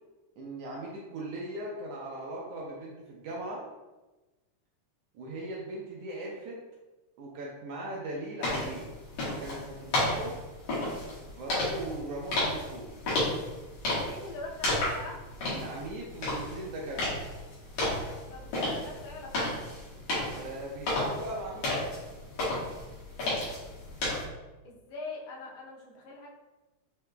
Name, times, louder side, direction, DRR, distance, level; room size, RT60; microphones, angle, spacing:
voice 1, 0.4-3.6 5.1-6.6 7.2-8.9 9.3-10.4 11.3-12.9 15.5-17.2 20.3-21.7, right 1 dB, 75° right, -3 dB, 1.5 m, -39 dB
sound 1, 8.4-24.2, left 1 dB, 85° left, 2.9 m, -33 dB
voice 2, 14.0-15.2 18.3-19.5 24.6-26.3, left 3 dB, 70° left, -3 dB, 1.7 m, -43 dB
6.5 x 2.8 x 2.2 m, 1.1 s
omnidirectional pair, 3.3 m